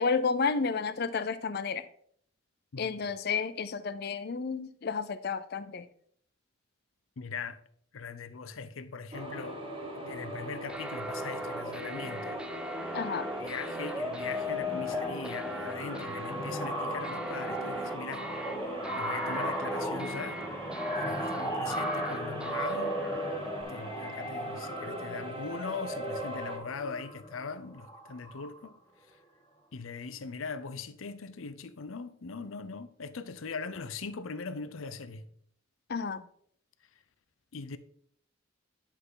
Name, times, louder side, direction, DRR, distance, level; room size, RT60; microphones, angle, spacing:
voice 1, 0.0-1.9 2.8-5.9 12.9-13.3 35.9-36.2, left 5 dB, 50° left, 0.5 m, -31 dB
voice 2, 7.2-7.6 7.9-9.7 9.9-12.4 13.4-18.2 18.9-20.4 21.0-23.4 23.7-28.8 29.1-29.2 29.7-35.3 37.5-37.8, left 4 dB, 90° left, 0.7 m, -40 dB
sound 1, 9.1-26.6, equal, 25° right, 1.6 m, -42 dB
sound 2, 10.7-23.6, equal, 5° right, 0.4 m, -37 dB
sound 3, 12.7-13.0 13.3-13.5 13.8-28.7, right 1 dB, 20° left, 1.5 m, -38 dB
10.0 x 5.6 x 3.9 m
head